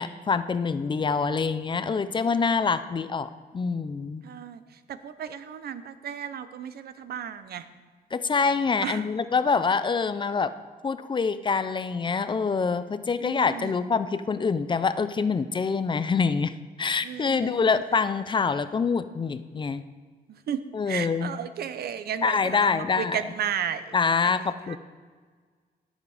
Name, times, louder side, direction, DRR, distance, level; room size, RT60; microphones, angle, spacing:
voice 1, 0.0-4.2 8.1-10.5 10.8-16.5 16.8-19.8 20.7-21.3 22.2-23.2 23.9-24.8, left 5 dB, 30° left, 12 dB, 0.5 m, -25 dB
voice 2, 4.2-7.7 8.8-9.1 13.2-13.9 17.0-17.8 20.3-23.9 24.2-24.8, right 8 dB, 75° right, 12 dB, 0.7 m, -34 dB
18.5 x 7.3 x 4.9 m, 1.5 s
wide cardioid pair, 135°, 16 cm